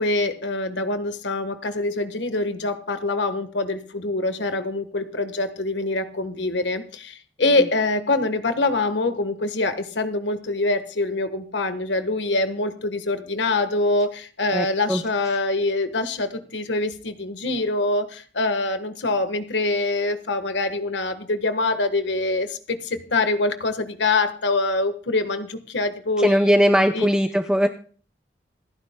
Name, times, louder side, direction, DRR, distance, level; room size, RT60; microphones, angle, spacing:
voice 1, 0.0-27.1, left 2 dB, 80° left, 9 dB, 1.4 m, -25 dB
voice 2, 14.5-15.0 26.2-27.7, equal, 5° right, 6 dB, 0.5 m, -19 dB
27.0 x 10.0 x 2.2 m, 0.42 s
head